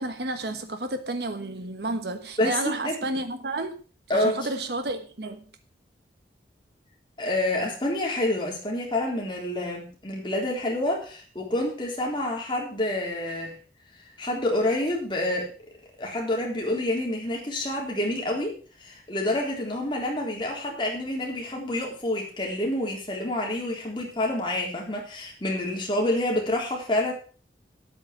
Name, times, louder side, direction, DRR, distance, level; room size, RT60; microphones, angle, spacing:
voice 1, 0.0-3.8 4.1-5.4, right 2 dB, 70° right, 1.3 m, -31 dB
voice 2, 2.4-3.0 4.1-4.5 7.2-13.6 14.2-15.5 16.0-18.5 18.8-27.1, left 1 dB, 25° left, 3.8 m, -28 dB
9.6 x 8.9 x 6.1 m
head